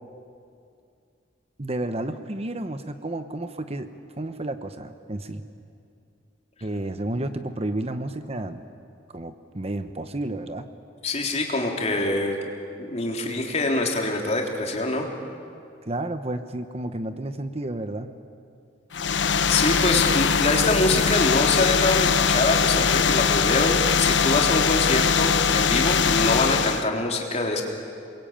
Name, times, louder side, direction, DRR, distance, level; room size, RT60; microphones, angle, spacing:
voice 1, 1.6-3.9 4.2-5.4 6.6-8.6 9.1-10.7 15.9-18.1, right 1 dB, 35° right, 9 dB, 1.0 m, -31 dB
voice 2, 11.0-12.4 12.8-15.1 19.5-27.6, left 2 dB, 35° left, 0 dB, 3.6 m, -24 dB
sound 1, 18.9-26.9, left 6 dB, 80° left, 0.8 m, -21 dB
29.0 x 22.0 x 8.8 m, 2.5 s
head